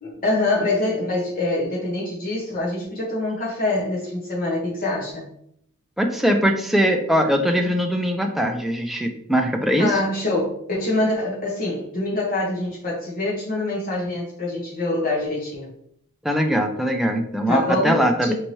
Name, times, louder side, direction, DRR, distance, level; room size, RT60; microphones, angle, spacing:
voice 1, 0.0-5.3 9.8-15.7 17.5-18.3, left 2 dB, 40° left, -5 dB, 0.9 m, -25 dB
voice 2, 6.0-9.9 16.2-18.3, equal, ahead, 3 dB, 0.3 m, -21 dB
4.5 x 2.7 x 3.0 m, 0.70 s
head